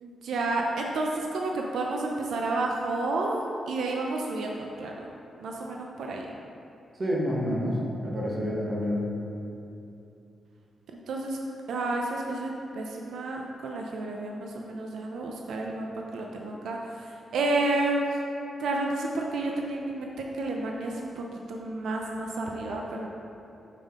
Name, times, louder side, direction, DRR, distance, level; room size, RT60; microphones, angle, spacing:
voice 1, 0.0-5.1 5.4-6.3 11.1-11.4 11.7-15.9 16.1-18.2 18.6-23.1, right 2 dB, 85° right, 0 dB, 0.5 m, -31 dB
voice 2, 6.9-9.1, equal, 30° right, -4 dB, 1.0 m, -28 dB
5.5 x 5.3 x 3.6 m, 2.8 s
wide cardioid pair, 125°, 0 cm